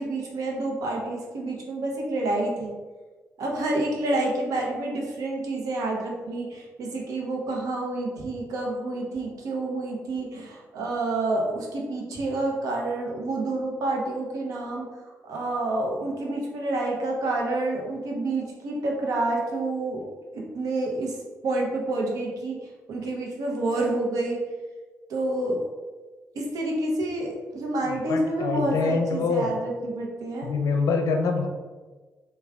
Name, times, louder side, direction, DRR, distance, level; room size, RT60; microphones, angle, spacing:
voice 1, 0.0-2.7 3.4-14.9 15.2-21.2 21.4-22.6 22.9-24.4 25.1-25.6 26.3-30.5, right 2 dB, 80° right, -1 dB, 0.7 m, -28 dB
voice 2, 28.1-29.5 30.4-31.5, left 4 dB, 70° left, 4 dB, 0.4 m, -25 dB
3.3 x 2.3 x 3.6 m, 1.3 s
supercardioid pair, 55°, 6 cm